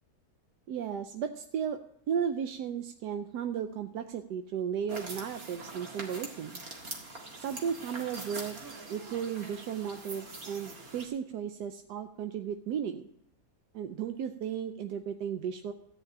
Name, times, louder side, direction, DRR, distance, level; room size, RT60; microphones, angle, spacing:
voice 1, 0.7-1.8 2.1-6.6 7.4-8.6 8.9-13.1 13.7-15.7, right 8 dB, 90° right, 7 dB, 1.3 m, -35 dB
sound 1, 4.9-11.1, right 2 dB, 60° right, 2.4 m, -43 dB
14.0 x 5.1 x 8.6 m, 0.75 s
omnidirectional pair, 1.7 m